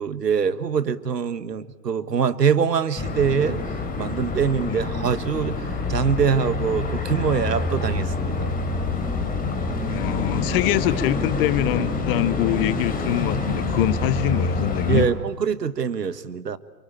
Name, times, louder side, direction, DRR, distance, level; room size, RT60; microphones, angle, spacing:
voice 1, 0.0-3.6 3.9-8.5 14.9-16.6, right 6 dB, 80° right, 14 dB, 1.5 m, -24 dB
sound 1, 2.9-15.0, left 3 dB, 15° left, 4.0 m, -26 dB
voice 2, 9.8-15.1, left 13 dB, 35° left, 16 dB, 1.0 m, -24 dB
28.5 x 23.5 x 8.7 m, 1.2 s
figure-of-eight pair, 115°, 48 cm